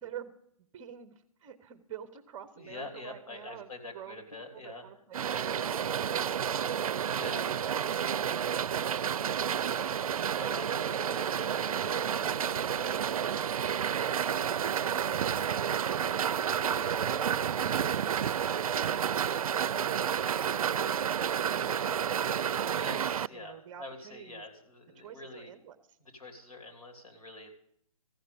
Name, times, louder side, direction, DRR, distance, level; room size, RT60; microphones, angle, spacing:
voice 1, 0.0-0.3 0.6-7.0 7.2-7.5 7.8-10.5 11.8-13.3 13.8-14.5 19.7-22.8 23.3-24.4 25.0-25.8, right 9 dB, 20° right, 12 dB, 0.7 m, -48 dB
voice 2, 2.6-4.9 7.1-7.5 10.4-11.2 22.7-25.5 26.0-27.5, left 2 dB, 90° left, 2 dB, 3.3 m, -45 dB
sound 1, 5.1-23.3, right 8 dB, 75° right, 0.4 m, -30 dB
sound 2, 5.4-6.5 10.5-12.5 16.5-17.4, right 2 dB, 10° left, 1.0 m, -45 dB
sound 3, 14.3-17.4, right 1 dB, 25° left, 4.6 m, -52 dB
14.5 x 6.5 x 8.3 m, 0.70 s
hypercardioid pair, 150°, 18 cm